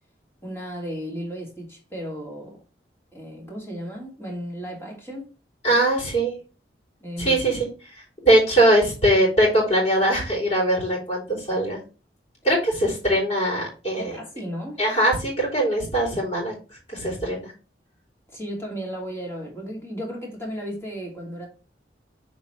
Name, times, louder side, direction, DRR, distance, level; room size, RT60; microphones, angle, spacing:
voice 1, 0.4-2.6 3.1-5.3 7.0-7.4 13.1-13.2 14.0-14.8 18.3-21.5, equal, 15° left, 2.5 m, -34 dB
voice 2, 5.6-6.3 7.2-7.7 8.2-11.8 12.4-14.1 14.8-16.5 16.9-17.5, right 1 dB, 35° left, 3.6 m, -21 dB
6.8 x 4.2 x 4.3 m
head